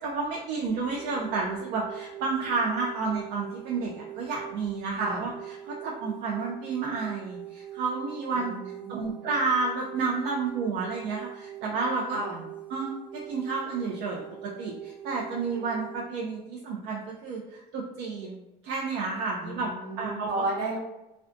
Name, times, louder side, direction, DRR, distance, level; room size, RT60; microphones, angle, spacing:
voice 1, 0.0-5.3 5.7-8.5 8.9-12.2 12.7-19.7 20.0-20.4, right 4 dB, 85° right, -2 dB, 0.4 m, -31 dB
sound 1, 1.0-16.0, right 12 dB, 10° right, 0.3 m, -43 dB
voice 2, 8.3-9.2 12.1-12.4 19.4-20.8, right 2 dB, 65° right, -2 dB, 0.8 m, -33 dB
2.4 x 2.2 x 2.5 m, 0.95 s
cardioid pair, 110°, 17 cm